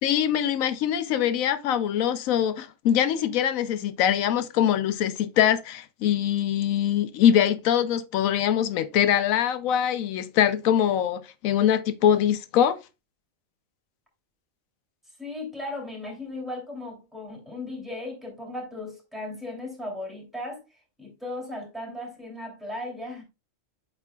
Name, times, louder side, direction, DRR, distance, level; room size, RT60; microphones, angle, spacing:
voice 1, 0.0-12.8, left 10 dB, 90° left, 1.0 m, -23 dB
voice 2, 15.2-20.6 21.0-23.2, left 2 dB, ahead, 2.6 m, -36 dB
8.2 x 5.7 x 2.3 m
omnidirectional pair, 1.4 m